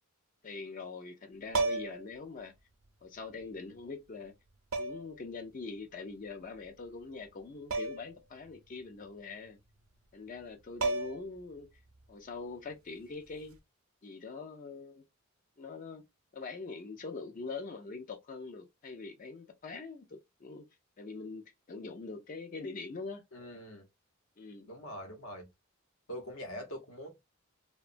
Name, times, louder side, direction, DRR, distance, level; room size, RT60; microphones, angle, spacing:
voice 1, 0.4-2.5 3.0-4.3 4.8-9.6 10.1-11.7 12.1-13.6 14.0-15.0 15.6-16.0 16.3-20.6 21.0-23.2 24.4-24.7, left 4 dB, 40° left, 0.4 m, -43 dB
sound 1, 1.5-2.1 3.4-3.5 4.7-5.2 7.7-8.1 8.5-8.6 10.4-10.5 10.8-11.4 13.4-13.6, right 3 dB, 70° right, 0.6 m, -33 dB
voice 2, 23.3-23.9 24.7-25.5 26.1-27.1, equal, 75° left, 0.8 m, -43 dB
2.8 x 2.2 x 2.5 m
head